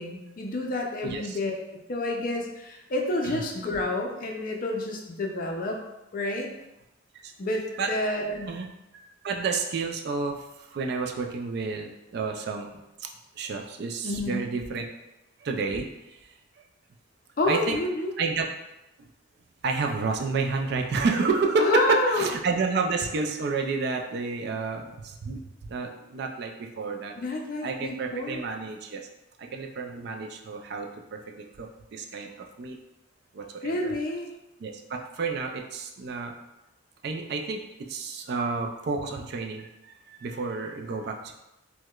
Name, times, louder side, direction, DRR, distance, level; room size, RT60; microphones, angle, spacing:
voice 1, 0.0-1.5 1.9-5.8 6.1-6.5 7.4-8.5 14.0-14.4 17.4-18.1 21.6-22.3 27.2-28.4 33.6-34.3, left 2 dB, 45° left, 1 dB, 0.4 m, -29 dB
voice 2, 7.7-8.1 8.4-8.7 8.9-13.1 13.4-14.9 15.4-16.3 17.5-17.8 18.2-18.5 19.0-19.1 19.6-27.1 27.6-29.0 29.4-32.8 33.3-33.9 34.6-36.3 37.0-41.3, right 4 dB, 50° right, 3 dB, 0.3 m, -30 dB
4.6 x 2.1 x 2.3 m, 0.93 s
head